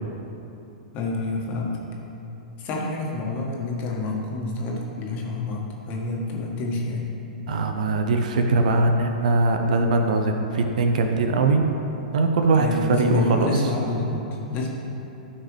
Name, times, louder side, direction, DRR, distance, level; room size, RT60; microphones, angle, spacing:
voice 1, 0.9-1.8 2.6-7.1 12.6-14.7, left 2 dB, 40° left, -2 dB, 1.7 m, -27 dB
voice 2, 7.5-11.6 12.1-13.5, right 3 dB, 65° right, 5 dB, 0.8 m, -21 dB
13.0 x 5.9 x 3.3 m, 2.9 s
figure-of-eight pair, 105°, 4 cm